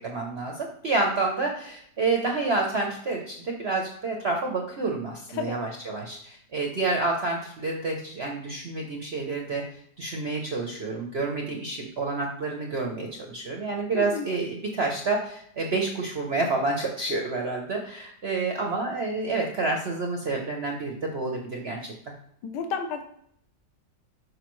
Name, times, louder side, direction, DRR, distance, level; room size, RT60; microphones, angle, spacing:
voice 1, 0.0-21.9, right 3 dB, 60° right, 1 dB, 0.6 m, -29 dB
voice 2, 5.3-5.6 13.9-14.3 22.4-23.0, left 5 dB, 75° left, 6 dB, 1.3 m, -31 dB
6.5 x 4.9 x 3.0 m, 0.68 s
omnidirectional pair, 2.0 m